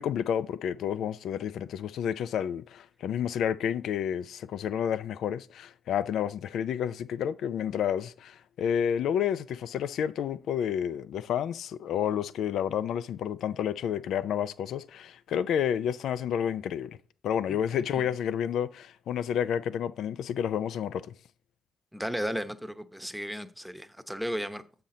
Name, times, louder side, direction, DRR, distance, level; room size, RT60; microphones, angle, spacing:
voice 1, 0.0-17.0 17.2-21.0, left 9 dB, 75° left, 0.4 m, -30 dB
voice 2, 21.9-24.6, equal, ahead, 0.9 m, -34 dB
7.2 x 5.8 x 3.8 m
supercardioid pair, 50°, 0 cm